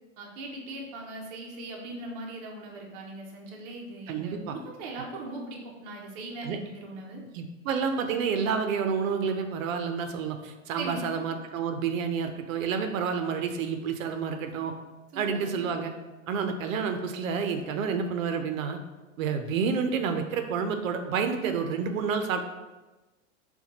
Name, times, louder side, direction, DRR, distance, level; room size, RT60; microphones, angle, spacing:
voice 1, 0.2-7.2 10.8-11.1 15.1-15.6, right 2 dB, 30° right, -1 dB, 0.5 m, -40 dB
voice 2, 4.1-4.6 6.4-6.6 7.3-14.7 15.2-15.9 16.3-18.8 19.2-22.4, right 6 dB, 80° right, 6 dB, 0.5 m, -29 dB
4.2 x 2.2 x 2.8 m, 1.1 s
supercardioid pair, 155°, 40 cm